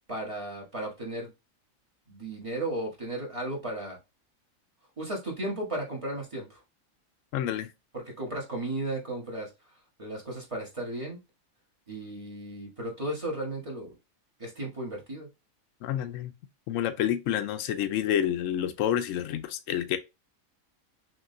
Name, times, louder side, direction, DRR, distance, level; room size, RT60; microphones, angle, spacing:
voice 1, 0.1-1.3 2.1-4.0 5.0-6.6 7.9-9.5 10.0-11.2 11.9-13.9 14.4-15.3, right 1 dB, 25° right, 1.5 m, -35 dB
voice 2, 7.3-7.7 15.8-16.3 16.7-20.0, left 10 dB, 70° left, 0.9 m, -28 dB
5.9 x 2.7 x 2.6 m
omnidirectional pair, 1.4 m